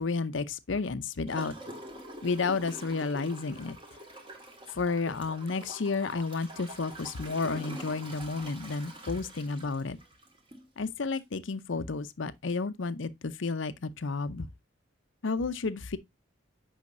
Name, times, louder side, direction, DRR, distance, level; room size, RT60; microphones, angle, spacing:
voice 1, 0.0-1.5 2.2-3.8 4.7-10.0 10.8-14.5 15.2-16.0, left 4 dB, 65° left, 0.6 m, -31 dB
Gurgling / Toilet flush, 1.3-10.7 11.2-11.3, right 1 dB, 25° right, 1.8 m, -45 dB
8.4 x 5.6 x 2.6 m
head